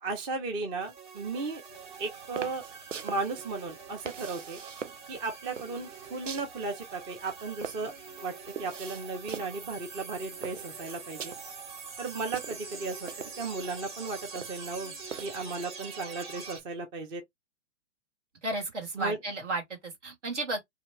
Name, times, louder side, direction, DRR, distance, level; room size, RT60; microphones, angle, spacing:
voice 1, 0.0-1.6 2.0-2.6 3.0-4.6 5.1-7.9 8.2-8.3 8.6-11.3 12.0-13.1 13.4-14.9 15.2-17.2 18.9-19.2, right 3 dB, 15° right, 0.5 m, -35 dB
sound 1, 0.8-16.6, right 5 dB, 40° right, 1.8 m, -45 dB
sound 2, 1.7-15.6, right 7 dB, 85° right, 0.7 m, -45 dB
voice 2, 18.4-20.6, right 2 dB, 70° right, 2.0 m, -33 dB
2.8 x 2.7 x 3.4 m
figure-of-eight pair, 115°, 37 cm